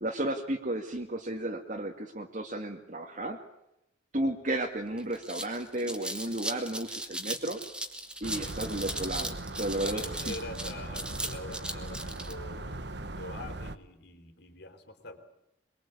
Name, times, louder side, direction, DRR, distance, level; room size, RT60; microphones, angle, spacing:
voice 1, 0.0-3.4 4.1-7.6 8.2-10.4, right 1 dB, 40° right, 1 dB, 2.1 m, -33 dB
sound 1, 4.6-4.7 5.0-12.3, right 1 dB, 5° right, 2.2 m, -37 dB
sound 2, 8.2-13.8, right 2 dB, 55° right, 1.3 m, -39 dB
voice 2, 9.8-12.8 13.2-15.2, left 2 dB, 55° left, 7 dB, 4.3 m, -45 dB
24.0 x 23.5 x 8.5 m, 0.81 s
head